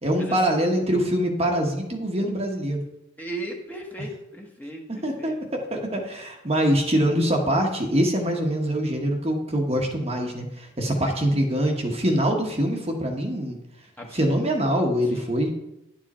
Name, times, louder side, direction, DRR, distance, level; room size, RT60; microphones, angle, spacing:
voice 1, 0.0-2.8 5.0-13.6 14.1-15.5, equal, 30° right, 1 dB, 1.2 m, -24 dB
voice 2, 3.2-5.4 10.8-11.2 14.0-14.3 15.0-15.3, right 1 dB, 10° left, 0 dB, 1.3 m, -37 dB
11.0 x 7.5 x 4.3 m, 0.90 s
head